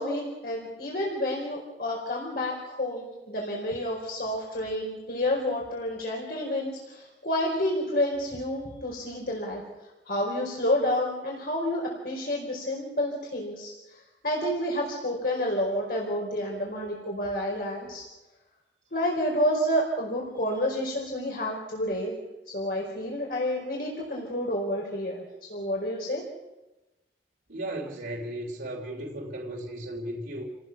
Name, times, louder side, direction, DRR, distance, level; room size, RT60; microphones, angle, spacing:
voice 1, 0.0-18.1 18.9-22.2 22.5-25.2 25.5-26.2, left 1 dB, 55° left, -2 dB, 4.8 m, -29 dB
voice 2, 27.5-30.4, right 1 dB, 75° right, -2 dB, 3.4 m, -35 dB
29.5 x 19.0 x 6.1 m, 1.0 s
head